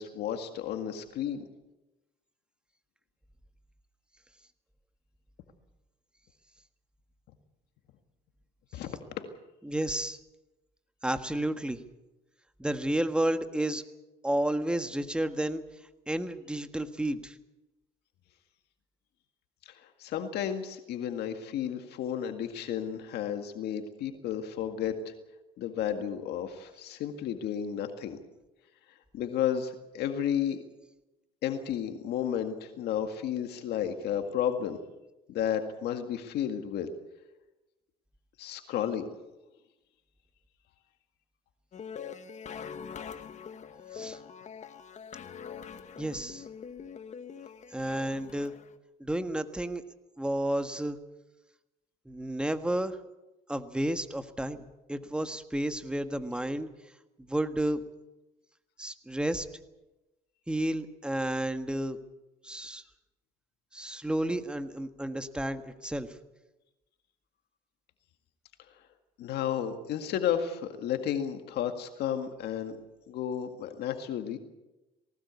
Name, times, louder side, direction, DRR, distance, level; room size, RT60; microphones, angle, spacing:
voice 1, 0.0-1.4 8.7-9.3 19.7-25.1 25.6-28.2 29.1-30.6 31.4-34.8 35.3-36.9 38.4-39.1 69.2-72.7 73.1-74.4, left 9 dB, 75° left, 6 dB, 1.9 m, -32 dB
voice 2, 9.6-10.2 11.0-11.8 12.6-13.8 14.2-15.6 16.1-17.4 43.9-44.2 46.0-46.4 47.7-48.5 49.0-49.8 50.2-51.0 52.0-53.0 53.5-56.7 57.2-57.8 58.8-59.5 60.5-62.0 62.4-62.8 63.7-66.1, right 1 dB, 5° right, 9 dB, 1.5 m, -31 dB
sound 1, 41.7-48.7, left 7 dB, 45° left, 1.5 m, -44 dB
19.5 x 18.5 x 8.3 m, 1.0 s
cardioid pair, 110°, 17 cm